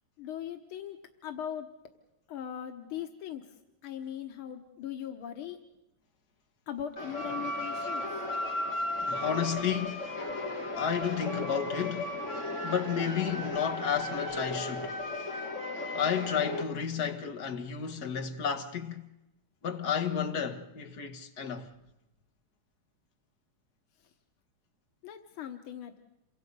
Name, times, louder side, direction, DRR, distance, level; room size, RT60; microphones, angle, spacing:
voice 1, 0.2-1.0 1.2-1.7 2.3-3.4 3.8-5.6 6.7-8.2 25.0-26.0, left 10 dB, 90° left, 2.0 m, -39 dB
sound 1, 7.0-16.6, left 1 dB, 35° left, 3.7 m, -35 dB
voice 2, 9.0-10.1 10.8-12.1 12.6-15.0 15.9-19.0 19.6-21.7, left 8 dB, 50° left, 1.7 m, -32 dB
27.5 x 24.0 x 5.4 m
omnidirectional pair, 2.3 m